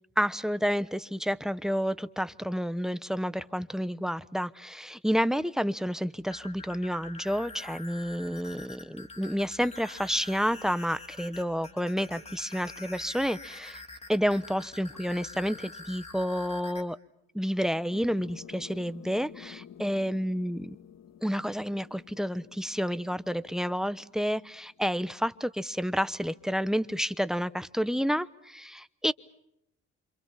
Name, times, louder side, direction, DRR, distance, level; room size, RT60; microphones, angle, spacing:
voice 1, 0.2-13.8 14.1-17.0 17.3-20.8 21.2-29.1, equal, ahead, 16 dB, 1.0 m, -30 dB
sound 1, 6.2-16.8, left 3 dB, 20° left, 3.6 m, -46 dB
sound 2, 17.9-25.1, left 9 dB, 60° left, 1.8 m, -51 dB
28.0 x 26.5 x 5.8 m, 0.76 s
cardioid pair, 90°, 30 cm